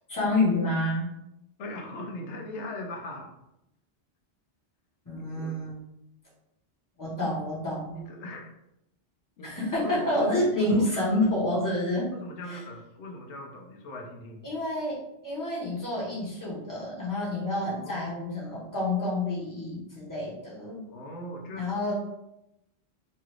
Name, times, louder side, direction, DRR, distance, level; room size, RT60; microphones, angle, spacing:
voice 1, 0.1-1.1 5.1-5.7 7.0-8.0 9.4-12.1 12.5-12.6 14.4-20.9 21.5-22.0, left 1 dB, 20° left, -6 dB, 0.9 m, -28 dB
voice 2, 1.6-3.3 5.2-5.5 7.9-8.5 9.4-9.5 9.8-10.9 12.1-14.5 17.6-18.1 20.9-21.7, left 1 dB, 90° left, 0 dB, 0.9 m, -39 dB
3.1 x 2.4 x 3.0 m, 0.85 s
omnidirectional pair, 1.1 m